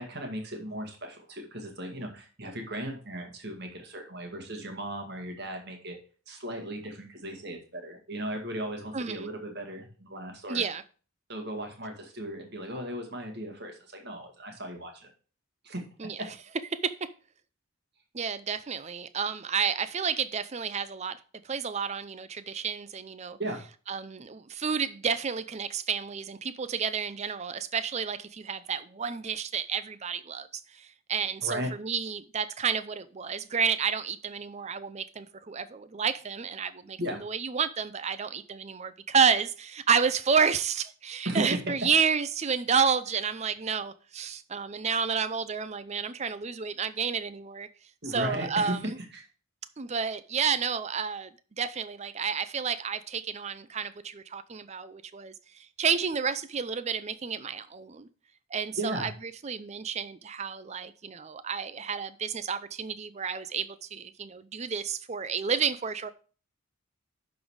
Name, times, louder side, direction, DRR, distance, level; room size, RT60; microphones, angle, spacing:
voice 1, 0.0-6.0 6.3-10.6 11.3-15.1 15.6-16.3 23.4-23.6 31.4-31.7 37.0-37.2 41.3-41.6 48.0-48.8 49.1-49.3 58.7-59.1, right 1 dB, 50° right, 2.0 m, -36 dB
voice 2, 8.9-9.3 10.5-10.8 16.0-16.2 16.8-16.9 18.1-21.2 21.4-23.4 23.9-47.7 48.1-49.0 49.8-51.3 51.6-58.1 58.5-59.1 59.4-66.1, right 6 dB, 30° right, 0.5 m, -30 dB
11.0 x 4.0 x 4.8 m
head